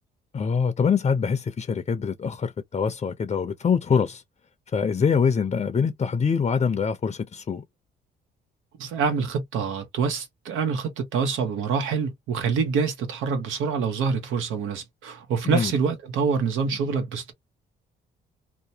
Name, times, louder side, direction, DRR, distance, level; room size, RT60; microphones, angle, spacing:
voice 1, 0.3-4.2 4.7-7.6 15.4-15.7, left 6 dB, 30° left, 0.5 m, -24 dB
voice 2, 8.8-17.3, right 5 dB, 85° right, 1.0 m, -26 dB
2.8 x 2.2 x 2.7 m
cardioid pair, 90°, 20 cm